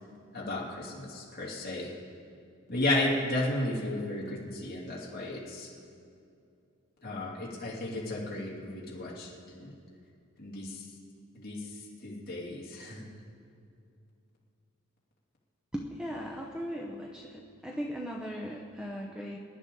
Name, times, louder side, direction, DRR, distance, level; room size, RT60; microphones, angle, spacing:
voice 1, 0.3-1.9 2.7-5.7 7.0-9.7 10.4-10.9 11.3-13.1, left 1 dB, 45° left, -4 dB, 2.6 m, -34 dB
voice 2, 15.7-19.4, equal, 5° right, -1 dB, 0.7 m, -38 dB
23.5 x 11.0 x 3.9 m, 2.5 s
head